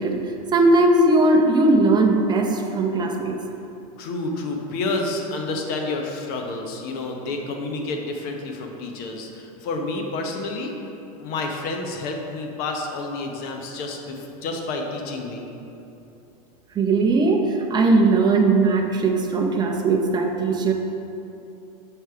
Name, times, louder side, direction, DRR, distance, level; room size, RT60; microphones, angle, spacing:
voice 1, 0.0-3.4 16.8-20.7, right 2 dB, 20° right, 2 dB, 0.7 m, -19 dB
voice 2, 4.0-10.7 11.2-15.4, left 2 dB, 50° left, 2 dB, 0.9 m, -29 dB
6.3 x 3.3 x 5.7 m, 2.8 s
supercardioid pair, 120°, 20 cm